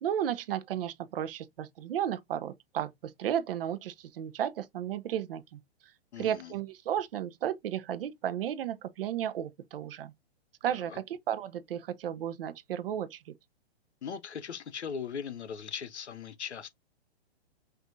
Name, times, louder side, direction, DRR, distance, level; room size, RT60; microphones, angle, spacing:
voice 1, 0.0-5.6 6.2-10.1 10.6-13.3, right 10 dB, 55° right, 0.6 m, -34 dB
voice 2, 6.1-6.5 10.7-11.0 14.0-16.7, left 7 dB, 90° left, 0.7 m, -39 dB
6.0 x 2.7 x 2.5 m
hypercardioid pair, 120°, 33 cm